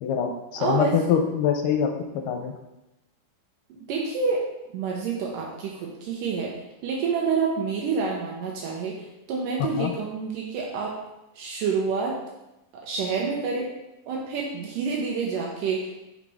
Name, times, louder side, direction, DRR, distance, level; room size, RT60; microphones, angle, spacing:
voice 1, 0.0-1.9 2.3-2.5 9.8-9.9, left 8 dB, 90° left, 4 dB, 2.3 m, -24 dB
voice 2, 0.6-0.9 3.7-4.4 4.7-6.5 6.8-11.0 11.4-12.2 12.7-13.7 14.1-16.0, right 5 dB, 80° right, -2 dB, 2.4 m, -28 dB
5.8 x 4.0 x 4.8 m, 0.94 s
omnidirectional pair, 3.8 m